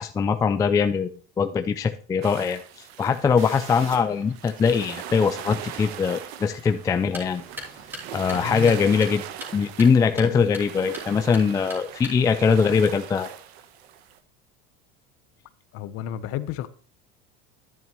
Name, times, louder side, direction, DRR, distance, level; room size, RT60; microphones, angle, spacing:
voice 1, 0.0-7.4 8.1-9.2 9.5-13.3, left 5 dB, 10° left, 0.3 m, -22 dB
sound 1, 2.2-14.2, right 10 dB, 90° right, 1.1 m, -40 dB
sound 2, 3.4-9.0, right 4 dB, 45° right, 2.4 m, -47 dB
sound 3, 7.0-12.5, left 1 dB, 5° right, 2.7 m, -42 dB
voice 2, 8.3-8.8 10.2-10.4 15.7-16.7, left 11 dB, 50° left, 0.8 m, -32 dB
11.0 x 8.9 x 3.1 m
supercardioid pair, 140°, 30 cm